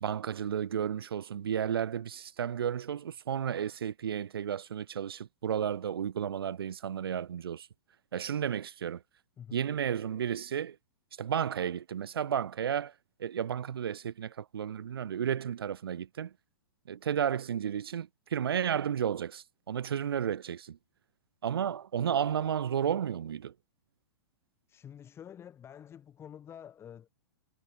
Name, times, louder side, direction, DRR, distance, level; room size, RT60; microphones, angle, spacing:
voice 1, 0.0-7.7 8.1-9.0 9.5-10.8 11.2-12.9 13.2-16.3 16.9-20.8 21.4-23.5, right 9 dB, 90° right, 0.5 m, -32 dB
voice 2, 24.7-27.1, left 9 dB, 20° left, 7.2 m, -48 dB
hypercardioid pair, 130°, 12 cm